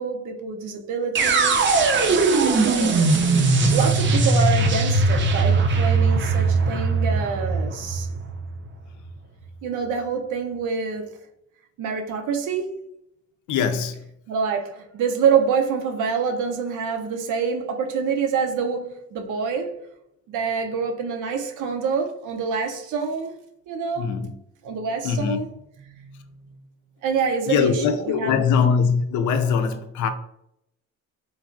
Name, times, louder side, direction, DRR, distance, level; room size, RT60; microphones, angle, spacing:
voice 1, 0.0-1.7 2.1-3.0 3.7-8.1 9.6-11.1 11.8-12.8 14.3-19.8 20.3-23.3 23.7-24.1 24.6-25.5 25.8-26.2 27.0-28.5, right 6 dB, 85° right, 0.6 m, -26 dB
sound 1, 1.1-9.1, right 3 dB, 40° right, 0.5 m, -20 dB
voice 2, 13.5-14.0 24.0-24.3 25.0-25.4 27.5-30.1, left 6 dB, 75° left, 0.5 m, -22 dB
3.2 x 2.3 x 2.5 m
cardioid pair, 90°, 30 cm